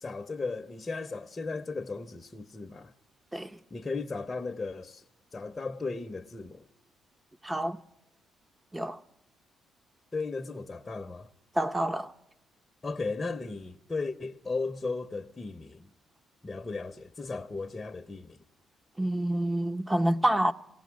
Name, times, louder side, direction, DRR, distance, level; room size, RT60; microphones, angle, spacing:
voice 1, 0.0-2.9 3.7-5.0 5.3-6.6 10.1-11.3 12.8-15.9 16.4-18.4, left 3 dB, 25° left, 0.7 m, -36 dB
voice 2, 7.4-7.8 8.7-9.0 11.5-12.1 19.0-20.5, right 1 dB, 15° right, 0.7 m, -27 dB
19.0 x 18.0 x 9.4 m
cardioid pair, 90°, 0 cm